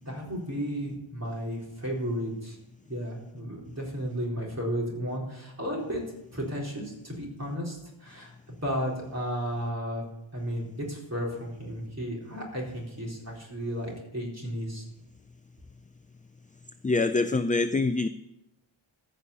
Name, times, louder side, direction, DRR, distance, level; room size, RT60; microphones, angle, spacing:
voice 1, 0.0-2.6 2.9-6.0 6.3-8.3 8.6-10.0 10.3-14.8, equal, 30° right, -3 dB, 4.0 m, -33 dB
voice 2, 16.8-18.1, left 3 dB, 20° left, 11 dB, 0.3 m, -25 dB
14.5 x 5.6 x 8.3 m, 0.88 s
wide cardioid pair, 115°, 48 cm